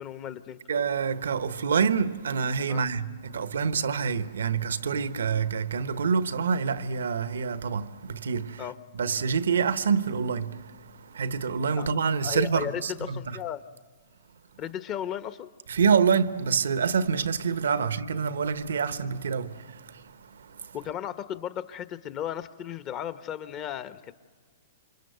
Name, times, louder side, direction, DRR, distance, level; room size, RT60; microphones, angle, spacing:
voice 1, 0.0-0.6 2.7-2.8 8.6-8.8 11.8-11.9 12.2-13.6 14.6-15.5 17.8-17.9 20.7-24.1, left 10 dB, 35° left, 1.1 m, -35 dB
voice 2, 0.7-8.6 8.9-13.2 15.7-20.7, right 6 dB, 80° right, 1.1 m, -27 dB
28.5 x 25.5 x 8.0 m
hypercardioid pair, 130°, 0 cm